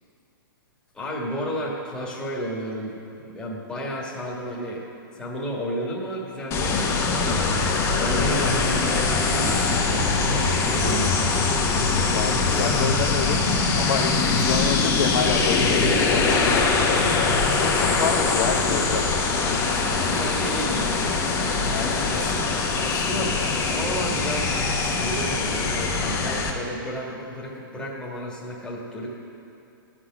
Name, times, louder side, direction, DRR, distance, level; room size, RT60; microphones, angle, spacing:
voice 1, 0.9-3.0 3.2-4.8 5.1-6.8 7.2-7.5 8.0-9.7 10.3-11.3 20.0-21.3 21.9-22.4 22.8-23.4 23.6-29.1, equal, 5° left, -5 dB, 1.7 m, -32 dB
sound 1, 6.5-26.5, left 4 dB, 25° left, 1.1 m, -22 dB
voice 2, 8.3-8.8 12.0-13.5 13.7-16.4 16.8-19.9 20.6-20.9 21.7-22.1, left 6 dB, 55° left, -1 dB, 0.9 m, -29 dB
12.5 x 6.1 x 6.1 m, 2.6 s
hypercardioid pair, 140°, 12 cm